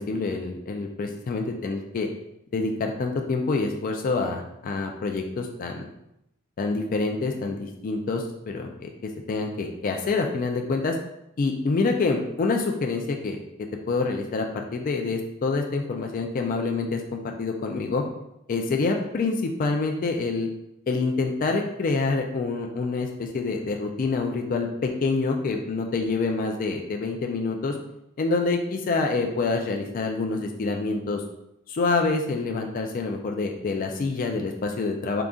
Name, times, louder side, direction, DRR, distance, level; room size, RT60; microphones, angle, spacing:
voice 1, 0.0-2.1 2.5-5.9 6.6-11.0 11.4-13.4 13.9-18.0 18.5-20.5 20.9-27.8 28.2-31.2 31.7-35.2, left 3 dB, 40° left, 2 dB, 0.3 m, -27 dB
3.8 x 2.3 x 3.6 m, 0.83 s
head